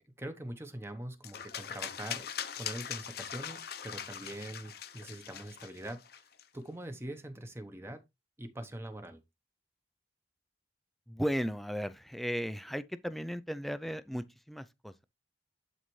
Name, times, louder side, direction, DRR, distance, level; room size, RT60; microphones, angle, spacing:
voice 1, 0.0-2.2 2.6-6.0 6.5-8.0 8.4-9.2, right 1 dB, 15° right, 1.0 m, -43 dB
sound 1, 1.2-6.4, left 8 dB, 60° left, 0.8 m, -41 dB
voice 2, 11.1-15.0, equal, ahead, 0.4 m, -36 dB
11.0 x 4.0 x 3.1 m
head